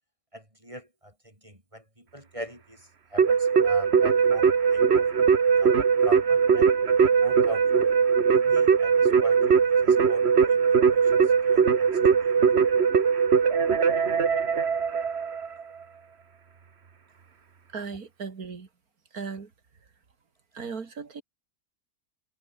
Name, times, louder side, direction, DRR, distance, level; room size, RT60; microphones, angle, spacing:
voice 1, 0.3-5.2 5.6-5.8 6.0-6.7 7.2-7.9 8.3-11.9 12.2-12.6, equal, 20° right, 7.2 m, -43 dB
Keyboard (musical), 3.2-15.6, right 6 dB, 50° right, 1.5 m, -21 dB
voice 2, 17.7-18.7 19.1-19.5 20.5-21.2, right 5 dB, 80° right, 2.8 m, -37 dB
omnidirectional pair, 1.5 m